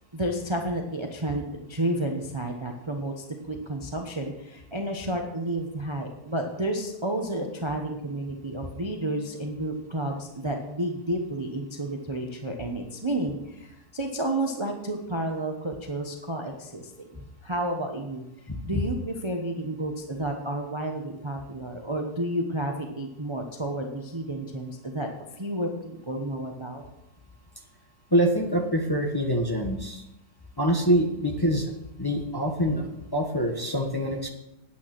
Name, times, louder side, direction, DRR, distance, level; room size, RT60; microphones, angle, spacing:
voice 1, 0.1-18.2 18.6-25.1 25.3-26.8, right 1 dB, 20° right, 2 dB, 0.8 m, -31 dB
voice 2, 18.5-18.8 28.1-30.0 30.6-31.7 32.0-34.3, equal, 15° left, 2 dB, 1.0 m, -25 dB
9.5 x 8.9 x 6.0 m, 0.89 s
omnidirectional pair, 1.8 m